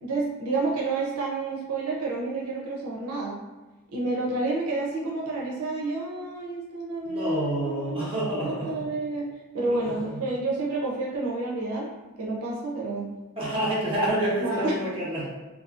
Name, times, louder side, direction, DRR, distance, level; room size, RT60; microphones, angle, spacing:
voice 1, 0.0-3.4 3.9-11.9 12.2-13.1 14.4-15.0, right 2 dB, 85° right, -2 dB, 0.5 m, -29 dB
voice 2, 7.0-8.8 9.5-10.2 13.4-15.3, right 1 dB, 25° right, -7 dB, 1.0 m, -28 dB
2.6 x 2.6 x 2.4 m, 1.1 s
head